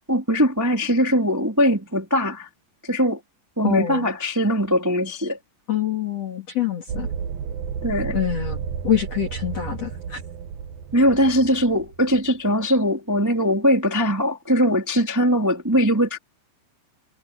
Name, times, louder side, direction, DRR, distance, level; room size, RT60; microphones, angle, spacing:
voice 1, 0.1-2.5 2.8-3.2 3.6-5.4 7.8-8.1 10.9-16.2, equal, 5° right, 2.2 m, -21 dB
voice 2, 3.6-4.1 5.7-7.1 8.1-10.2, left 10 dB, 40° left, 3.3 m, -25 dB
sound 1, 6.9-12.3, right 7 dB, 90° right, 1.6 m, -32 dB
omnidirectional pair, 5.4 m